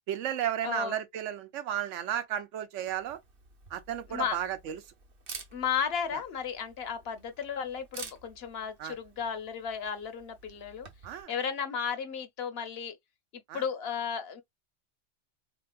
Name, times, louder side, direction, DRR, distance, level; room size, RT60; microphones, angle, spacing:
voice 1, 0.1-3.2 3.7-4.8 8.8-9.0 11.0-11.3 13.5-13.6, right 10 dB, 85° right, 1.0 m, -33 dB
voice 2, 0.6-1.0 4.1-4.4 5.5-10.9 11.3-13.0 13.5-14.4, left 7 dB, 65° left, 0.8 m, -34 dB
Camera, 2.9-11.2, right 5 dB, 55° right, 1.0 m, -50 dB
3.5 x 2.9 x 2.3 m
omnidirectional pair, 1.2 m